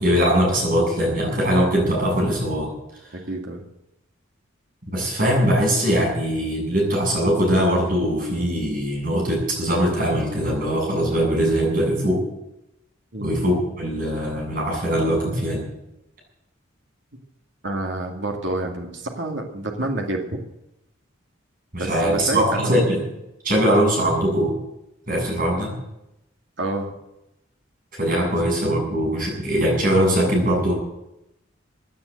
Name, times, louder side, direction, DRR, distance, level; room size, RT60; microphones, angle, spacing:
voice 1, 0.0-2.7 4.9-12.2 13.2-15.6 21.7-23.0 23.4-24.5 25.1-25.7 28.0-30.7, equal, 45° right, -1 dB, 7.6 m, -21 dB
voice 2, 3.1-3.6 13.1-13.3 17.6-20.4 21.8-22.8 23.5-23.6 26.6-26.9, right 2 dB, 65° right, 2 dB, 2.3 m, -28 dB
16.5 x 9.7 x 7.9 m, 0.88 s
head